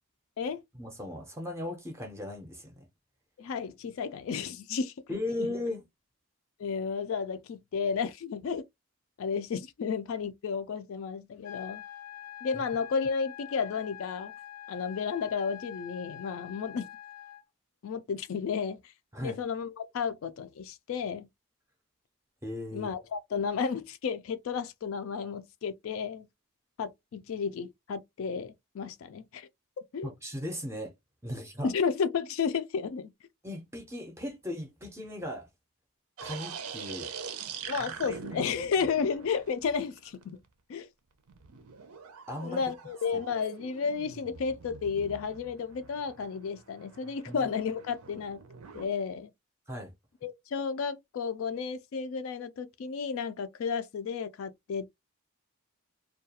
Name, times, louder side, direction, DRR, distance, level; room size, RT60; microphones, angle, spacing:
voice 1, 0.8-2.8 5.1-5.8 19.1-19.4 22.4-22.9 30.0-30.9 31.2-31.7 33.4-35.5 36.2-37.1 37.8-38.5 42.3-42.7 47.3-47.4 49.7-49.9, left 1 dB, 10° right, 0.5 m, -37 dB
voice 2, 3.4-5.5 6.6-8.6 9.2-11.8 12.4-14.3 14.7-16.9 17.8-18.9 19.2-21.3 22.7-26.3 26.8-29.5 29.9-30.1 31.6-33.1 37.7-40.4 40.7-40.9 42.4-48.4 48.7-49.3 50.2-54.9, left 6 dB, 65° left, 0.3 m, -32 dB
sound 1, 11.4-17.4, left 12 dB, 90° left, 0.7 m, -45 dB
sound 2, 36.2-40.5 41.3-48.9, right 6 dB, 85° right, 0.5 m, -44 dB
2.3 x 2.2 x 2.8 m
head